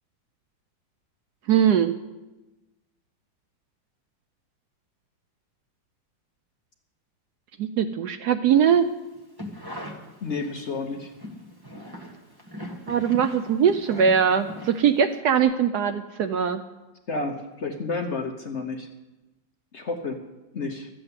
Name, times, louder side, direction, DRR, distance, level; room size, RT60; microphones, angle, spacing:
voice 1, 1.5-1.9 7.6-8.9 12.9-16.6, right 8 dB, 70° right, 9 dB, 1.0 m, -21 dB
sound 1, 9.1-10.7 11.1-15.1 15.4-15.5, left 1 dB, 15° right, 1.2 m, -39 dB
voice 2, 10.2-11.1 17.1-18.9 19.7-20.2 20.5-20.9, left 3 dB, 50° left, 3 dB, 1.0 m, -30 dB
13.5 x 7.8 x 8.2 m, 1.1 s
omnidirectional pair, 2.1 m